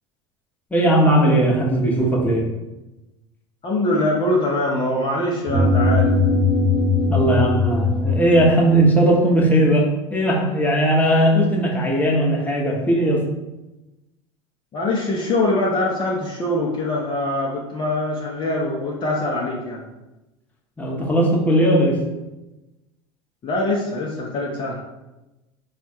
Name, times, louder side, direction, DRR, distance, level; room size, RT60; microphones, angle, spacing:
voice 1, 0.7-2.5 7.1-13.2 20.8-22.0, right 1 dB, 10° left, -3 dB, 1.1 m, -18 dB
voice 2, 3.6-6.1 14.7-19.8 23.4-24.8, left 1 dB, 35° left, -3 dB, 0.8 m, -23 dB
sound 1, 5.5-8.7, left 3 dB, 25° right, 1.3 m, -19 dB
4.2 x 2.4 x 4.4 m, 1.0 s
hypercardioid pair, 80°, 15 cm